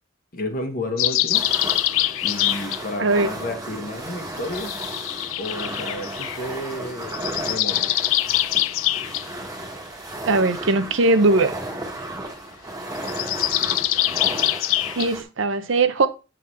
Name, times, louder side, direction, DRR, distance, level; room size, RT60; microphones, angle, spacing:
voice 1, 0.3-1.4 2.2-4.7 5.4-8.0, left 1 dB, 45° left, 5 dB, 1.3 m, -31 dB
sound 1, 1.0-2.8 4.4-6.4 7.0-9.2 13.0-15.1, left 15 dB, 90° left, 0.3 m, -24 dB
sound 2, 1.3-15.2, right 2 dB, 20° right, 1.3 m, -34 dB
voice 2, 10.3-11.5 15.0-16.1, right 3 dB, 70° right, 11 dB, 0.7 m, -19 dB
8.1 x 3.9 x 4.3 m, 0.30 s
head